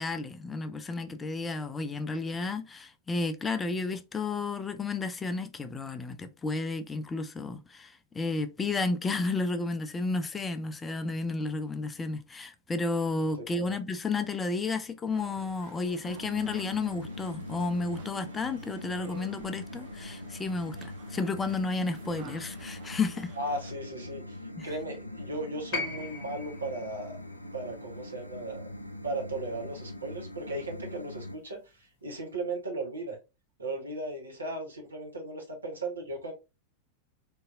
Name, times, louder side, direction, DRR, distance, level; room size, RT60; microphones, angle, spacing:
voice 1, 0.0-23.3 24.6-24.7, left 3 dB, 15° left, 0.4 m, -32 dB
voice 2, 13.4-13.7 23.4-27.2 27.5-28.6 29.0-33.2 33.6-36.3, right 2 dB, 75° right, 1.1 m, -36 dB
sound 1, 15.1-23.7, right 6 dB, 45° right, 0.7 m, -53 dB
sound 2, 16.0-31.4, left 1 dB, 90° left, 0.3 m, -42 dB
sound 3, 25.7-29.9 31.1-31.2, left 3 dB, 45° left, 0.8 m, -40 dB
3.7 x 2.7 x 2.4 m
figure-of-eight pair, 90°, 0 cm